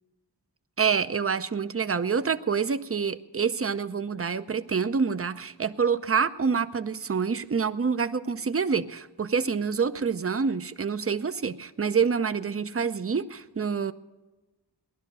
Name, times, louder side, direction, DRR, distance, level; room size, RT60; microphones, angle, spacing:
voice 1, 0.8-13.9, right 6 dB, 35° right, 12 dB, 0.6 m, -27 dB
18.0 x 11.5 x 5.4 m, 1.1 s
wide cardioid pair, 75°, 43 cm